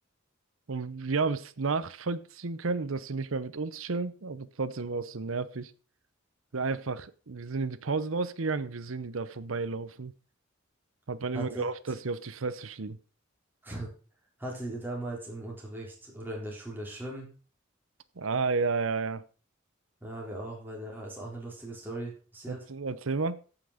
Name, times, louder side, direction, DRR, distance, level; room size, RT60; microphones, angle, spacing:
voice 1, 0.7-5.7 6.5-10.1 11.1-13.0 18.2-19.2 22.5-23.4, right 4 dB, 75° right, 0.8 m, -32 dB
voice 2, 11.3-11.6 13.6-13.9 14.4-17.3 20.0-22.7, right 1 dB, 10° right, 4.0 m, -38 dB
15.0 x 6.0 x 5.0 m
head